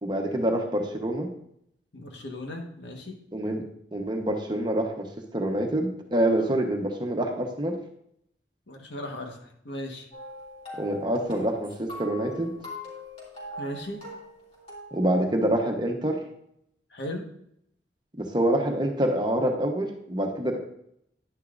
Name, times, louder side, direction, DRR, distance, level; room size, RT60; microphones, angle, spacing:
voice 1, 0.0-1.3 3.3-3.6 3.9-5.1 5.3-7.8 10.8-12.5 14.9-16.2 18.2-20.6, right 1 dB, 25° right, 2 dB, 1.1 m, -26 dB
voice 2, 1.9-3.2 8.7-10.1 13.6-14.0 16.9-17.3, left 1 dB, 85° left, 2 dB, 1.6 m, -37 dB
sound 1, 10.1-15.3, left 1 dB, 35° left, 3.1 m, -42 dB
10.5 x 10.5 x 2.6 m, 0.73 s
head